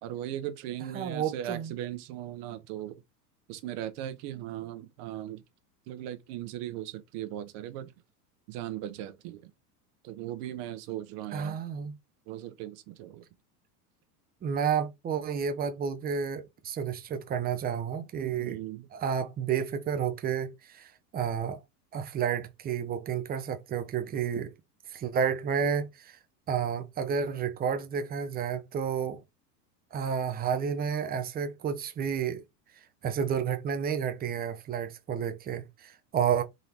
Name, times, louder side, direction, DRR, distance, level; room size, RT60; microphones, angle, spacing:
voice 1, 0.0-3.0 3.5-5.4 5.9-7.9 8.5-9.5 10.0-11.6 12.3-13.2 18.2-18.9, right 12 dB, 55° right, 1.0 m, -38 dB
voice 2, 0.9-1.7 11.3-11.9 14.4-18.6 18.9-21.6 21.9-24.5 24.9-26.2 26.5-29.2 29.9-32.4 33.0-36.4, right 7 dB, 20° right, 0.6 m, -31 dB
3.9 x 2.7 x 3.2 m
hypercardioid pair, 110°, 48 cm